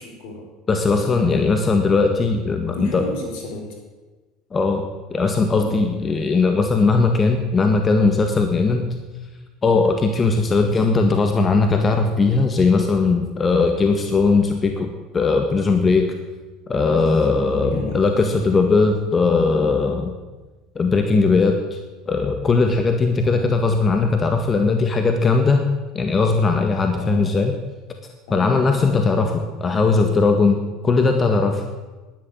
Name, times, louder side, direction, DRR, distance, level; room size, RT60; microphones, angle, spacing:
voice 1, 0.0-0.5 1.0-1.7 2.7-3.8 5.6-5.9 17.2-18.6 23.2-23.6 26.9-27.4 28.3-29.2, equal, 70° left, 3 dB, 4.1 m, -34 dB
voice 2, 0.7-3.0 4.5-4.8 5.1-8.9 9.6-14.9 15.1-16.0 16.7-20.1 20.7-21.8 22.1-25.7 25.9-27.5 28.3-31.6, left 4 dB, 30° left, 5 dB, 1.7 m, -19 dB
10.5 x 10.5 x 8.9 m, 1.2 s
hypercardioid pair, 80°, 0 cm